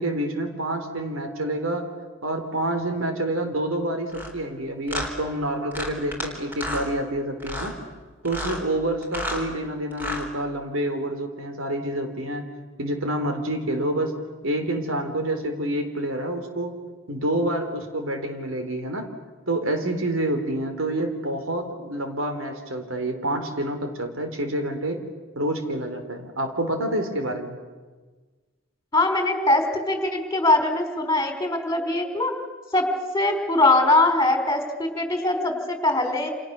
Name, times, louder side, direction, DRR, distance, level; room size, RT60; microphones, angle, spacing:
voice 1, 0.0-1.9 2.2-7.8 8.2-12.4 12.8-14.1 14.4-16.7 17.1-19.1 19.5-25.0 25.4-27.6, right 1 dB, 85° right, 6 dB, 3.7 m, -28 dB
sound 1, 4.1-4.3 4.9-5.1 5.7-6.3 6.5-6.9 7.4-7.7 8.2-8.6 9.0-9.4 9.9-10.3, left 1 dB, 10° right, 3.8 m, -31 dB
voice 2, 28.9-32.3 32.7-32.9 33.1-36.3, left 2 dB, 15° left, 5 dB, 4.2 m, -22 dB
29.0 x 28.0 x 6.8 m, 1.4 s
head